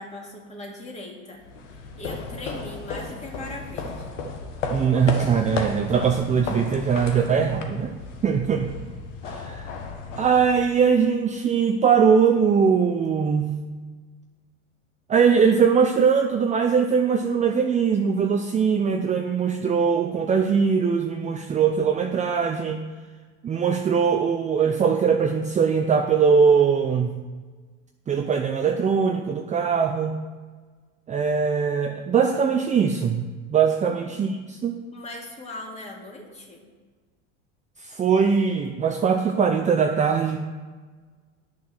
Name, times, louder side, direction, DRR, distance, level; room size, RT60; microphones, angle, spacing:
voice 1, 0.0-1.4 2.0-4.1 33.8-34.0 34.9-36.6, left 1 dB, 20° left, -1 dB, 2.6 m, -39 dB
sound 1, 1.4-11.1, left 4 dB, 80° left, 1.5 m, -34 dB
voice 2, 4.7-7.9 8.2-8.7 9.3-9.7 10.2-13.6 15.1-22.8 23.4-27.2 28.1-30.2 31.1-33.2 33.5-34.8 37.8-40.4, right 6 dB, 20° right, 4 dB, 0.6 m, -21 dB
10.5 x 6.0 x 6.2 m, 1.4 s
hypercardioid pair, 95°, 36 cm